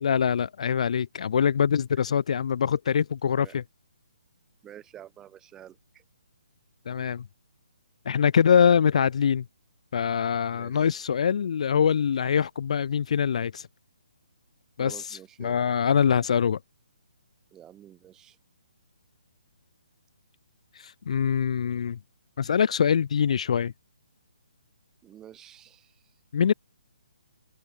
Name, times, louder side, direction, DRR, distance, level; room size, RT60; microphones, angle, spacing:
voice 1, 0.0-3.6 6.9-7.2 8.1-9.5 9.9-13.7 14.8-14.9 15.4-16.6 20.8-22.0 22.4-23.7 26.3-26.5, left 7 dB, 60° left, 0.3 m, -24 dB
voice 2, 4.6-6.0 10.5-10.9 14.8-15.6 17.5-18.4 25.0-26.1, right 11 dB, 15° right, 2.3 m, -49 dB
open air
hypercardioid pair, 150°, 4 cm